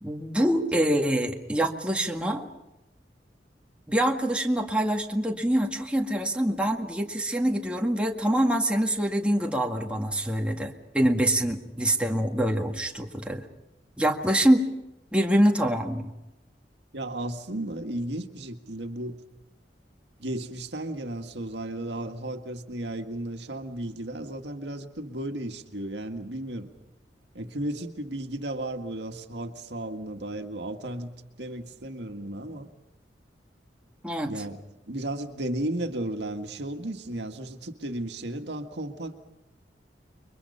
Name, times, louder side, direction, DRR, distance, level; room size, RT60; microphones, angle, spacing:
voice 1, 0.0-2.5 3.9-13.5 14.0-14.7 15.1-16.1 34.0-34.3, right 1 dB, 5° right, 1 dB, 1.9 m, -25 dB
voice 2, 16.9-19.2 20.2-26.7 27.3-32.7 34.2-39.1, right 1 dB, 80° right, 5 dB, 1.9 m, -34 dB
29.5 x 23.5 x 5.7 m, 0.93 s
head